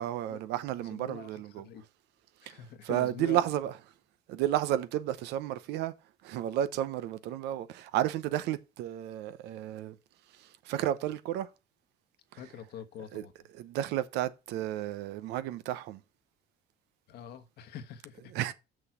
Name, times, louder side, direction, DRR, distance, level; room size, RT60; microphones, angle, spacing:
voice 1, 0.0-1.7 2.5-3.9 4.3-5.9 6.2-10.0 10.3-11.5 12.3-12.7 13.1-16.0 18.2-18.5, right 12 dB, 90° right, 0.8 m, -32 dB
voice 2, 0.8-1.8 2.4-3.4 12.4-13.3 17.1-18.4, left 9 dB, 70° left, 1.3 m, -45 dB
6.3 x 6.1 x 6.0 m
cardioid pair, 110°, 17 cm